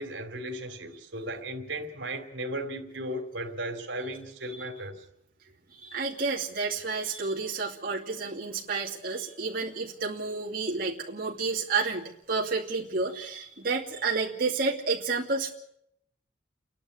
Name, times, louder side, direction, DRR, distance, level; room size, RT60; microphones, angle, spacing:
voice 1, 0.0-5.0, right 1 dB, 75° right, 3.2 m, -36 dB
voice 2, 5.7-15.5, right 4 dB, 50° right, 2.7 m, -30 dB
30.0 x 11.5 x 8.7 m
head